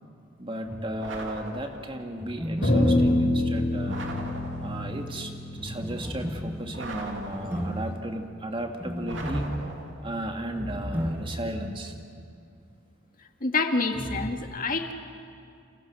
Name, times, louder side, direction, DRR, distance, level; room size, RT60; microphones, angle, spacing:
voice 1, 0.4-4.0 4.6-5.3 5.6-9.5 10.0-12.0, right 1 dB, 25° right, 3 dB, 2.2 m, -35 dB
sound 1, 0.6-1.4 2.2-4.9 5.6-11.8 12.1-12.2 13.9-14.3, equal, 10° right, 1.6 m, -35 dB
sound 2, 1.0-2.1 3.9-5.0 6.7-7.9 9.1-10.2, right 2 dB, 75° right, 2.8 m, -40 dB
sound 3, 2.6-7.1, left 1 dB, 65° left, 6.0 m, -26 dB
voice 2, 13.4-14.9, left 3 dB, 50° left, 5 dB, 1.8 m, -27 dB
29.0 x 28.5 x 6.2 m, 2.4 s
head